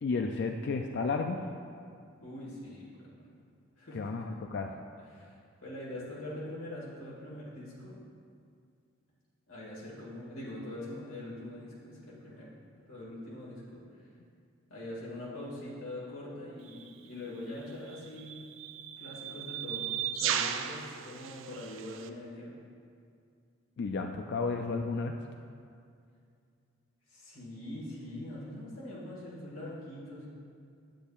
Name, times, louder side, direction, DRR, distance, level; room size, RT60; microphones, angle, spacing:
voice 1, 0.0-1.4 3.9-4.8 23.8-25.2, left 4 dB, 55° left, 4 dB, 0.3 m, -32 dB
voice 2, 2.2-3.3 3.8-4.1 5.1-8.0 9.5-12.5 12.9-13.8 14.7-18.4 19.0-22.5 27.1-30.3, left 1 dB, 80° left, -7 dB, 1.9 m, -43 dB
sound 1, 16.7-16.9 17.9-22.1, right 9 dB, 70° right, 0.4 m, -36 dB
9.9 x 8.6 x 2.4 m, 2.4 s
head